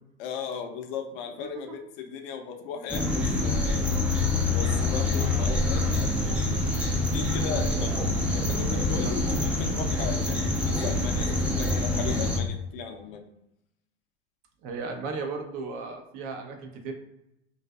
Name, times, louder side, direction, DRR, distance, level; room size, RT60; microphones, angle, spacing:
voice 1, 0.2-3.8 4.5-6.2 7.0-8.0 8.3-13.3, left 7 dB, 55° left, 4 dB, 0.5 m, -37 dB
sound 1, 2.9-12.4, left 2 dB, 5° right, 0.3 m, -26 dB
voice 2, 7.5-7.9 9.0-9.1 14.6-16.9, right 4 dB, 45° right, 4 dB, 0.6 m, -36 dB
2.5 x 2.3 x 2.3 m, 0.85 s
hypercardioid pair, 95°, 33 cm